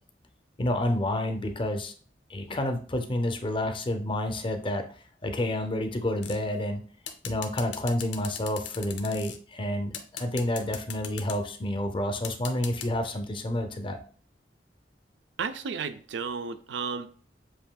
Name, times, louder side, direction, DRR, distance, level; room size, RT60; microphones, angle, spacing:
voice 1, 0.6-1.9 2.3-4.9 5.2-6.8 7.2-14.0, left 1 dB, 30° left, 6 dB, 0.5 m, -29 dB
sound 1, 6.2-6.6 7.1-9.4 9.9-11.4 12.2-12.9, left 8 dB, 80° left, 0.6 m, -38 dB
voice 2, 15.4-17.1, right 5 dB, 85° right, 10 dB, 0.4 m, -33 dB
7.4 x 2.6 x 2.2 m, 0.44 s
head